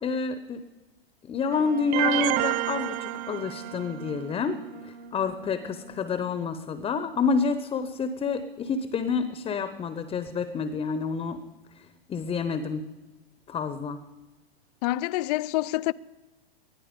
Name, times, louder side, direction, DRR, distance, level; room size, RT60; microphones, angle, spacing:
voice 1, 0.0-0.6 1.2-4.6 4.8-11.4 11.8-12.8 13.5-14.0, left 5 dB, 20° left, 0.9 m, -28 dB
Wind instrument woodwind instrument, 1.5-6.5, right 6 dB, 85° right, 2.5 m, -43 dB
sound 1, 1.9-4.0, right 17 dB, 25° right, 0.4 m, -28 dB
voice 2, 14.8-15.9, left 17 dB, 40° left, 0.4 m, -27 dB
20.0 x 13.0 x 5.2 m
hypercardioid pair, 110°, 31 cm